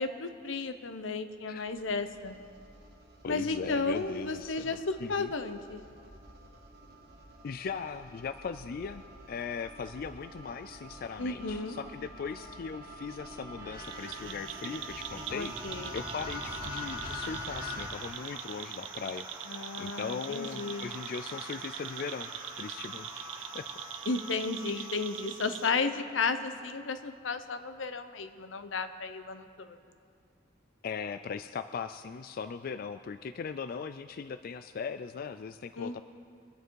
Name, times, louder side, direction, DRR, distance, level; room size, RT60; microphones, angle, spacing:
voice 1, 0.0-2.4 3.3-5.8 11.2-11.8 15.3-16.0 19.5-20.9 24.1-29.8 35.8-36.0, left 4 dB, 85° left, 9 dB, 0.9 m, -33 dB
sound 1, 1.6-17.9, left 1 dB, 60° right, 1.9 m, -45 dB
voice 2, 3.2-5.3 7.4-9.0 9.3-15.5 15.9-23.8 24.7-24.9 30.8-36.0, left 5 dB, 50° left, 10 dB, 0.3 m, -39 dB
sound 2, 13.5-27.2, right 1 dB, 20° right, 1.6 m, -48 dB
sound 3, 13.8-25.7, right 10 dB, 90° right, 0.7 m, -43 dB
23.5 x 9.2 x 4.7 m, 2.3 s
head